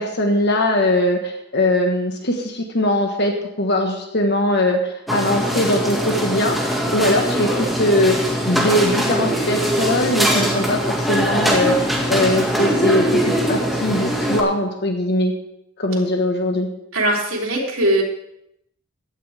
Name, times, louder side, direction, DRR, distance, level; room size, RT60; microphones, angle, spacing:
voice 1, 0.0-8.2 8.5-15.3 15.8-16.7, left 1 dB, 55° left, 3 dB, 1.5 m, -20 dB
sound 1, 5.1-14.4, equal, ahead, 1.9 m, -21 dB
voice 2, 16.9-18.0, right 1 dB, 75° right, -2 dB, 3.5 m, -20 dB
16.0 x 11.5 x 3.6 m, 0.79 s
head